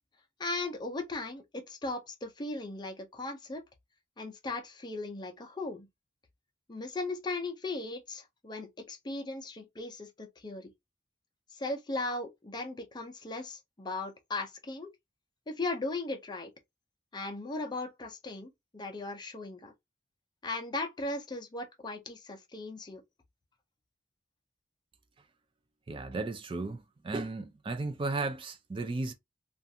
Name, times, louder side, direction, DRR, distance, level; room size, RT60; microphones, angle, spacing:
voice 1, 0.4-3.6 4.2-5.9 6.7-10.7 11.5-14.9 15.5-16.5 17.1-19.7 20.4-23.0, left 2 dB, 25° left, 0.5 m, -37 dB
voice 2, 25.9-29.1, right 3 dB, 30° right, 0.3 m, -35 dB
2.4 x 2.4 x 2.6 m
head